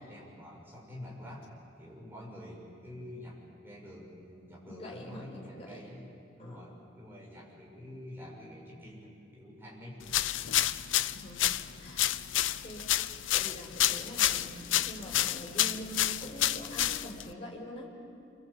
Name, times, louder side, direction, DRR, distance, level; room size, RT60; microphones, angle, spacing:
voice 1, 0.0-1.5 1.8-6.1 6.4-10.0 11.0-11.2, left 1 dB, 10° right, -3 dB, 6.5 m, -47 dB
voice 2, 4.7-5.8 6.4-6.6 11.1-11.5 11.8-12.2 12.6-18.0, equal, 30° left, -2 dB, 4.5 m, -44 dB
sound 1, 10.1-17.3, left 13 dB, 85° left, 0.6 m, -29 dB
27.5 x 25.0 x 8.6 m, 2.5 s
head